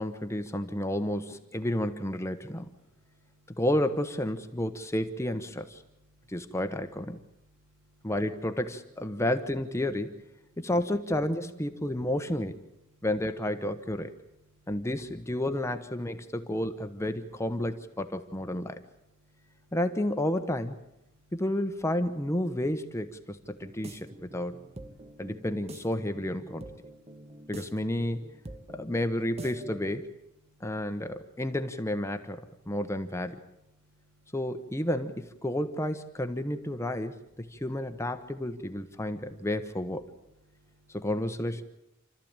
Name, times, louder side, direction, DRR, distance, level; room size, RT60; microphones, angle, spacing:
voice 1, 0.0-2.7 3.6-5.8 6.3-7.2 8.0-10.2 10.6-12.6 13.0-14.1 14.7-18.8 19.7-20.8 21.3-24.6 25.2-26.7 27.5-28.2 28.7-30.1 30.6-32.4 32.7-33.4 34.3-37.2 37.5-40.1 40.9-41.6, left 1 dB, 15° left, 8 dB, 1.0 m, -31 dB
voice 2, 2.8-3.6 19.2-19.7 21.2-21.3 24.0-24.1 25.0-25.2 26.9-27.5 28.6-28.8 34.1-34.4 40.5-41.0, right 1 dB, 70° right, 1 dB, 7.8 m, -65 dB
sound 1, 23.5-30.0, equal, 35° right, 1.1 m, -46 dB
28.5 x 13.5 x 8.8 m, 0.87 s
head